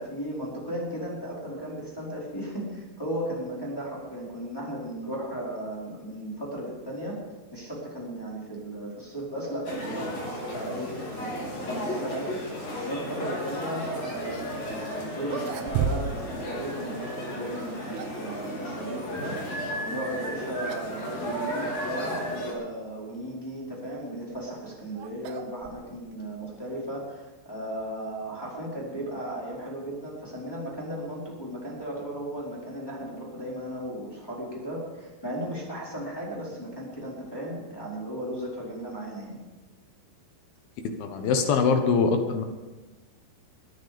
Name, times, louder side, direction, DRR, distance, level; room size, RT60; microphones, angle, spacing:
voice 1, 0.0-7.2 7.5-12.3 12.8-39.4, right 1 dB, 5° left, -6 dB, 4.0 m, -35 dB
sound 1, 9.6-22.5, equal, 35° left, 4.6 m, -34 dB
sound 2, 15.2-16.3 16.6-16.7 17.6-18.3 20.1-20.4 20.7-21.0 21.3-21.4 22.2-22.3 24.1-26.2, right 7 dB, 85° right, 3.7 m, -33 dB
voice 2, 41.0-42.4, left 5 dB, 65° left, 5 dB, 2.5 m, -23 dB
22.5 x 10.5 x 5.2 m, 1.2 s
omnidirectional pair, 5.7 m